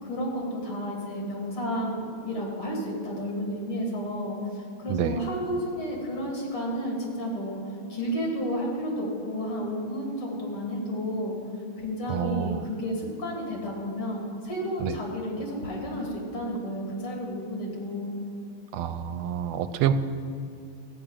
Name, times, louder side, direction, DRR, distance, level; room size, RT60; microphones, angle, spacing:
voice 1, 0.0-4.4 4.8-7.6 7.9-11.4 11.8-18.2, equal, 80° left, -2 dB, 3.6 m, -31 dB
voice 2, 12.1-12.7 14.8-15.0 18.7-19.9, right 10 dB, 85° right, 11 dB, 1.5 m, -27 dB
14.0 x 5.9 x 8.9 m, 2.5 s
omnidirectional pair, 2.4 m